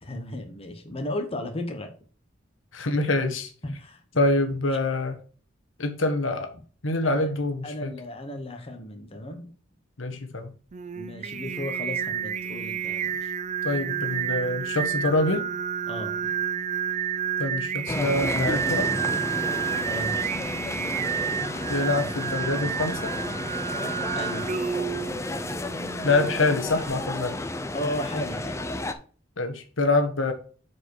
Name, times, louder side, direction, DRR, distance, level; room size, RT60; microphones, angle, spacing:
voice 1, 0.0-1.9 3.6-4.0 7.0-7.3 7.6-9.5 10.9-13.3 15.9-16.1 19.8-20.3 24.1-24.5 27.7-28.6, left 1 dB, 30° left, 4 dB, 1.2 m, -34 dB
voice 2, 2.7-3.5 4.2-5.2 5.8-6.5 6.8-7.9 10.0-10.5 13.6-15.4 17.4-18.9 21.7-23.1 26.0-27.4 29.4-30.3, left 2 dB, 75° left, 7 dB, 1.3 m, -25 dB
Singing, 10.7-27.0, right 8 dB, 35° right, 0.4 m, -30 dB
sound 1, 17.9-28.9, left 2 dB, 15° left, 0.6 m, -32 dB
7.5 x 4.7 x 4.7 m, 0.40 s
head